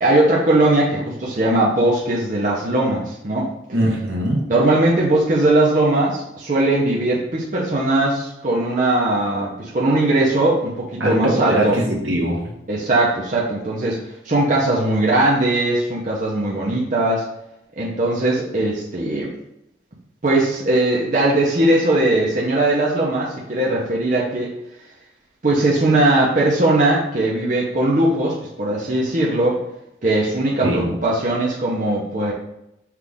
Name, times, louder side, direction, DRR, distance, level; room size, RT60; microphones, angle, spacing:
voice 1, 0.0-3.5 4.5-11.8 12.7-14.0 14.2-17.2 17.8-19.3 20.2-24.6 25.4-29.6 30.0-32.3, right 2 dB, 40° right, -5 dB, 0.7 m, -19 dB
voice 2, 3.7-4.5 11.0-12.4 30.6-30.9, right 1 dB, 70° right, -1 dB, 1.1 m, -21 dB
5.8 x 2.4 x 3.5 m, 0.83 s
head